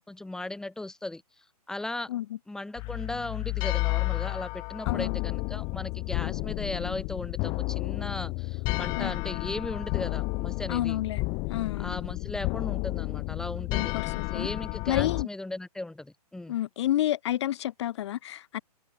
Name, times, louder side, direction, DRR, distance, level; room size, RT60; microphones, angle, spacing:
voice 1, 0.0-2.1 2.5-11.0 11.8-13.9 14.3-16.6, left 2 dB, 5° left, 2.5 m, -37 dB
sound 1, 2.8-15.2, left 27 dB, 20° left, 0.7 m, -31 dB
voice 2, 4.9-5.2 8.9-9.1 10.7-11.2 11.5-11.9 13.7-14.5 14.9-15.3 16.5-18.6, left 13 dB, 45° left, 2.2 m, -30 dB
figure-of-eight pair, 130°, 20 cm